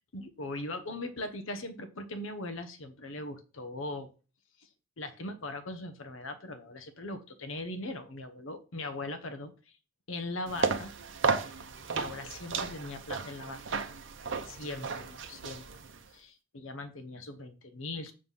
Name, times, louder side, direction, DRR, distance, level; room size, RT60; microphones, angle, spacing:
voice 1, 0.0-4.1 4.6-4.7 5.0-9.8 10.1-10.9 11.3-11.5 11.9-13.6 14.4-15.7 16.1-18.1, left 2 dB, 80° left, 9 dB, 0.9 m, -40 dB
sound 1, 10.5-16.1, right 5 dB, 65° right, 0.8 m, -34 dB
7.5 x 3.3 x 5.4 m, 0.33 s
head